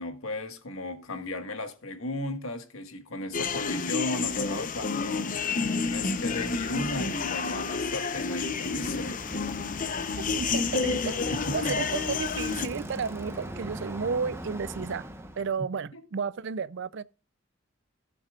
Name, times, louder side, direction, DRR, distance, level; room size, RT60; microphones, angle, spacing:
voice 1, 0.0-9.2 11.3-11.8 15.9-16.0, left 1 dB, 85° left, 1.6 m, -36 dB
sound 1, 3.3-12.7, left 4 dB, 40° left, 0.7 m, -30 dB
Bicycle, 8.0-15.5, right 1 dB, 10° right, 1.0 m, -41 dB
voice 2, 10.3-15.1 15.4-17.0, right 5 dB, 60° right, 0.5 m, -32 dB
17.5 x 7.0 x 2.4 m
head